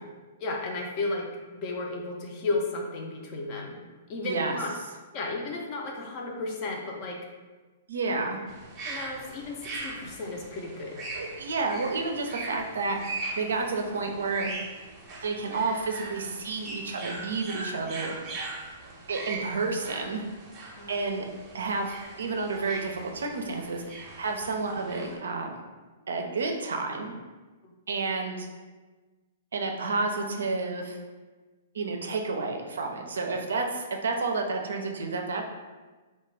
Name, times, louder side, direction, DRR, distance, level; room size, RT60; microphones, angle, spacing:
voice 1, 0.4-1.3 1.5-3.8 4.1-4.7 5.1-7.2 8.8-11.0 20.8-21.0 27.6-27.7, left 3 dB, 40° left, 0 dB, 0.5 m, -33 dB
voice 2, 4.2-4.6 7.9-8.4 11.1-14.5 15.2-18.2 19.1-20.3 20.9-21.3 21.5-23.8 24.2-25.6 26.1-27.1 27.9-28.5 29.5-31.0 31.7-35.4, right 3 dB, 75° right, 3 dB, 0.4 m, -30 dB
sound 1, 8.5-25.2, right 3 dB, 30° right, 0.6 m, -40 dB
2.3 x 2.2 x 3.2 m, 1.3 s
hypercardioid pair, 120°, 0 cm